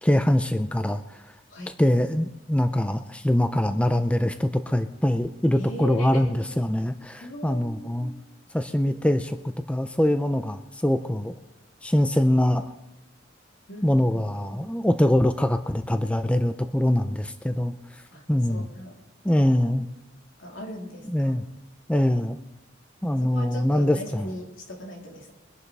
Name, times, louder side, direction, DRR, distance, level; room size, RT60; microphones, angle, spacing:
voice 1, 0.0-1.2 1.8-8.1 8.5-9.4 9.7-11.3 11.8-12.7 13.8-17.8 18.3-18.7 19.2-19.9 21.1-21.4 21.9-22.4 23.0-24.3, left 1 dB, 5° left, 8 dB, 0.5 m, -23 dB
voice 2, 5.6-6.3 7.2-8.2 8.8-8.9 13.7-14.6 18.1-18.2 18.5-18.9 19.6-19.8 20.4-21.3 23.2-25.3, left 1 dB, 90° left, -1 dB, 3.5 m, -39 dB
23.5 x 11.0 x 3.4 m, 0.95 s
head